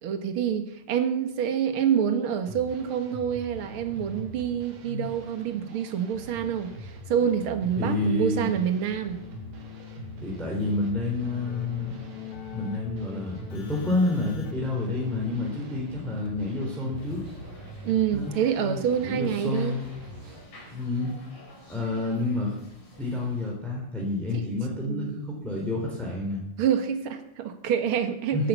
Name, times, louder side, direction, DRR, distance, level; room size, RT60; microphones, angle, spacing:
voice 1, 0.0-9.2 17.8-19.8 24.3-24.5 24.9-25.2 26.6-28.5, right 8 dB, 50° right, 7 dB, 1.8 m, -27 dB
sound 1, 2.4-20.4, right 1 dB, 70° right, 4.0 m, -42 dB
voice 2, 7.8-8.5 10.2-12.1 12.5-17.2 18.1-18.3 19.0-19.8 20.7-21.3 21.7-22.5 23.0-26.4 28.3-28.5, left 2 dB, ahead, -2 dB, 3.4 m, -29 dB
Keyboard (musical), 9.1-17.5, left 12 dB, 65° left, 2.6 m, -44 dB
sound 2, 16.9-23.5, equal, 85° left, 6.9 m, -49 dB
13.5 x 11.5 x 8.3 m, 0.82 s
omnidirectional pair, 3.8 m